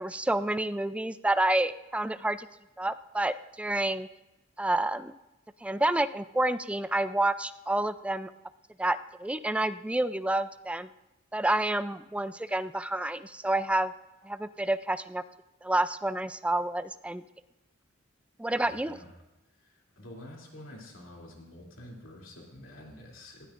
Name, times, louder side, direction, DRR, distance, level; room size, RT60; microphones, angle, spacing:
voice 1, 0.0-2.5 2.8-4.1 4.6-5.1 5.6-8.3 8.8-10.9 11.3-13.9 14.2-15.2 15.6-17.2 18.4-19.0, right 1 dB, 5° right, 12 dB, 0.3 m, -29 dB
voice 2, 18.6-19.1 19.6-23.5, left 1 dB, 75° left, -1 dB, 2.9 m, -48 dB
19.0 x 12.5 x 2.5 m, 0.98 s
head